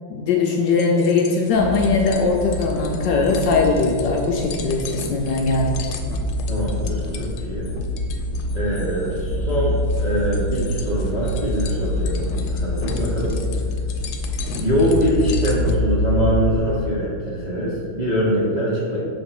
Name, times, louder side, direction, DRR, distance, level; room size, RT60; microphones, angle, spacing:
voice 1, 0.1-5.7, left 4 dB, 70° left, 0 dB, 1.1 m, -20 dB
sound 1, 0.7-15.8, left 4 dB, 90° left, 1.5 m, -36 dB
sound 2, 1.5-16.6, left 1 dB, 75° right, 1.4 m, -26 dB
voice 2, 6.5-7.7 8.5-13.4 14.6-19.1, equal, 40° right, -7 dB, 0.6 m, -23 dB
6.4 x 3.4 x 5.8 m, 2.3 s
omnidirectional pair, 2.3 m